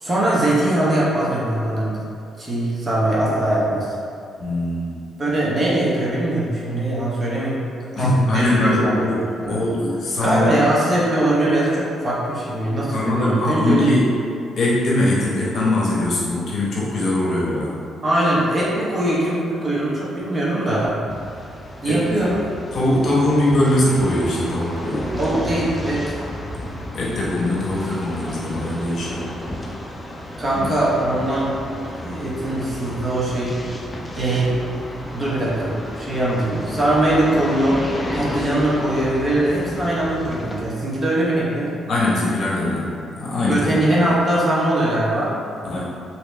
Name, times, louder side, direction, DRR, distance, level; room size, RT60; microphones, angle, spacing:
voice 1, 0.0-2.0 2.4-3.9 5.2-7.6 7.9-9.1 9.4-9.6 10.2-13.9 18.0-21.0 21.8-22.4 25.1-26.2 30.4-31.5 31.9-33.6 34.1-34.6 35.1-37.8 38.1-41.7 43.5-45.3, right 1 dB, 30° right, -7 dB, 0.9 m, -21 dB
voice 2, 4.4-5.0 8.0-10.5 12.9-14.1 14.6-17.8 21.8-22.0 22.7-25.1 26.9-29.3 30.5-30.7 41.9-43.8 45.6-45.9, left 1 dB, 55° left, -6 dB, 0.9 m, -21 dB
sound 1, 21.1-40.6, left 1 dB, 20° left, 0.4 m, -32 dB
3.1 x 2.8 x 3.2 m, 2.5 s
cardioid pair, 90°, 0 cm